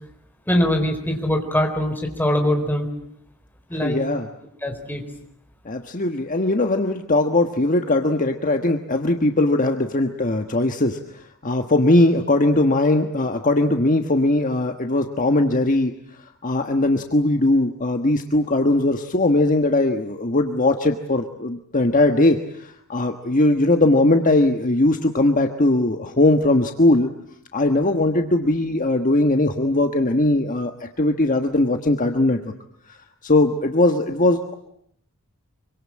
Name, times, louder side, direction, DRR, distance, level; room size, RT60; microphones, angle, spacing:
voice 1, 0.5-2.9 3.7-4.0 4.6-5.0, left 1 dB, 10° left, 3 dB, 4.3 m, -22 dB
voice 2, 3.8-4.3 5.6-11.0 11.4-15.9 16.4-27.1 27.5-32.5 33.2-34.5, left 2 dB, 35° left, 5 dB, 1.4 m, -20 dB
26.0 x 24.5 x 8.8 m, 0.71 s
head